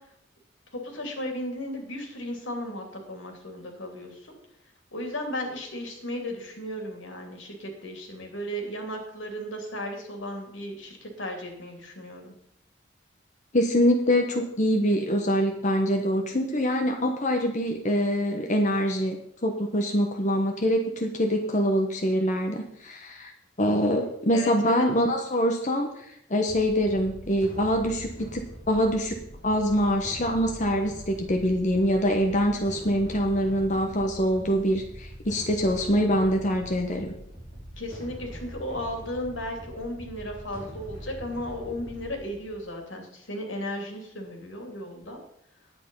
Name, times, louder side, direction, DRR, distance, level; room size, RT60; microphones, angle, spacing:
voice 1, 0.7-4.3 4.9-12.3 24.3-24.8 37.8-45.2, left 1 dB, 85° left, 3 dB, 2.9 m, -35 dB
voice 2, 13.5-19.2 19.4-23.3 23.6-25.9 26.3-28.4 28.7-29.2 29.4-37.1, equal, 40° left, 3 dB, 1.1 m, -24 dB
sound 1, 26.4-42.6, equal, 25° left, 4.5 m, -43 dB
10.5 x 8.9 x 5.5 m, 0.73 s
head